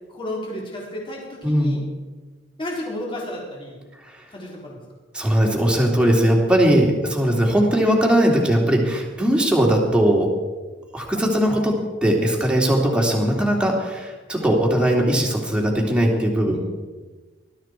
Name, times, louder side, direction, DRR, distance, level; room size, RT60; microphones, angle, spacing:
voice 1, 0.1-1.8 2.6-3.8 4.3-4.8 12.4-12.7 16.4-16.6, left 1 dB, 25° left, -3 dB, 4.1 m, -32 dB
voice 2, 1.4-1.8 4.0-4.2 5.1-10.3 10.9-16.6, equal, 5° right, -1 dB, 2.9 m, -19 dB
20.0 x 13.0 x 4.6 m, 1.3 s
head